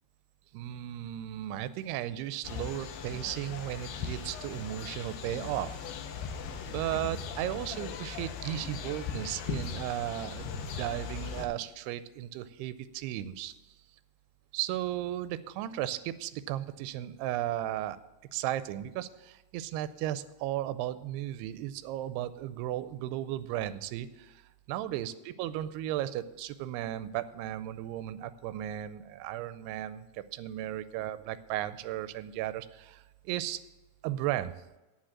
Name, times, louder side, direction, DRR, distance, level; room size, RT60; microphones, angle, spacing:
voice 1, 0.5-5.8 6.7-13.5 14.5-18.0 18.3-24.4 24.7-33.6 34.0-34.6, right 13 dB, 85° right, 13 dB, 2.5 m, -35 dB
sound 1, 2.4-11.5, left 6 dB, 75° left, 2.4 m, -39 dB
8.9 x 7.4 x 7.3 m, 1.0 s
omnidirectional pair, 4.7 m